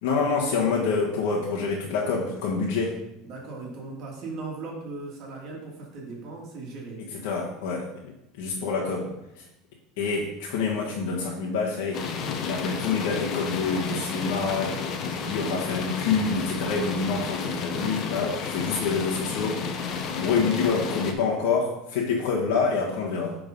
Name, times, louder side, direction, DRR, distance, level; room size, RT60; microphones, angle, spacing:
voice 1, 0.0-3.0 7.0-7.9 8.4-9.4 10.0-12.0 12.4-19.6 20.1-23.4, left 4 dB, 80° left, -3 dB, 1.4 m, -27 dB
voice 2, 3.2-7.0, right 3 dB, 45° right, -2 dB, 2.3 m, -38 dB
sound 1, 11.9-21.1, left 6 dB, 40° left, 0.9 m, -31 dB
8.7 x 3.9 x 5.3 m, 0.87 s
supercardioid pair, 140°, 0 cm